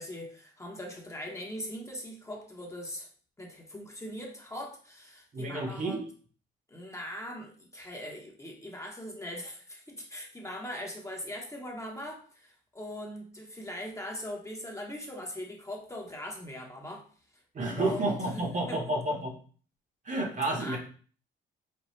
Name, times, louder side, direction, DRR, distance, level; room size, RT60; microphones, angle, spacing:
voice 1, 0.0-3.1 3.4-6.0 6.7-17.1 17.8-18.8 20.6-20.8, left 1 dB, 15° left, 0 dB, 0.9 m, -41 dB
voice 2, 5.3-6.1 17.5-19.3 20.0-20.8, right 2 dB, 40° right, 1 dB, 1.1 m, -30 dB
5.3 x 2.3 x 3.1 m, 0.42 s
cardioid pair, 90°, 20 cm